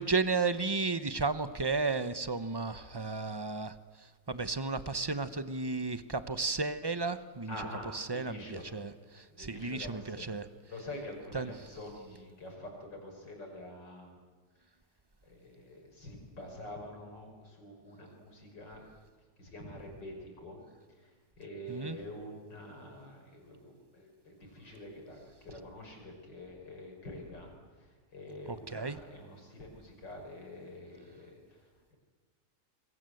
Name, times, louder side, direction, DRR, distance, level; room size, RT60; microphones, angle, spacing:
voice 1, 0.0-3.7 4.3-7.5 7.9-10.4 11.3-11.5 21.7-22.0 28.5-29.0, right 3 dB, 25° right, 12 dB, 0.6 m, -33 dB
voice 2, 7.5-8.6 9.3-10.3 10.7-14.1 15.2-18.9 19.4-20.6 21.0-27.5 27.8-32.0, left 1 dB, 80° left, 2 dB, 6.1 m, -46 dB
26.5 x 22.5 x 7.9 m, 1.4 s
omnidirectional pair, 1.9 m